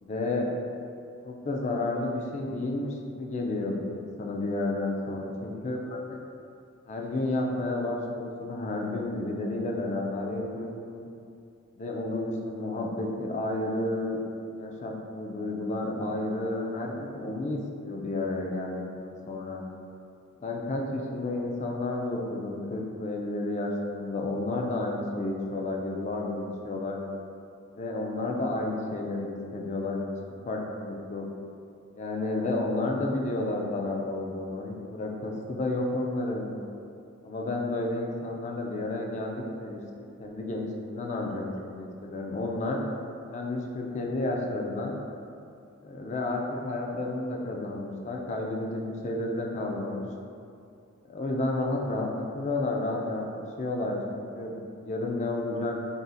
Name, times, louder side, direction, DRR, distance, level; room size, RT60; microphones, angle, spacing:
voice 1, 0.0-0.5 1.2-6.2 6.9-11.1 11.8-14.2 14.6-19.6 20.4-27.0 27.7-30.1 30.5-31.2 31.9-36.6 37.2-42.8 43.3-44.9 45.8-50.1 51.0-53.2 53.6-54.5 54.8-55.7, left 2 dB, 30° left, 0 dB, 0.3 m, -31 dB
2.6 x 2.4 x 3.7 m, 2.5 s
head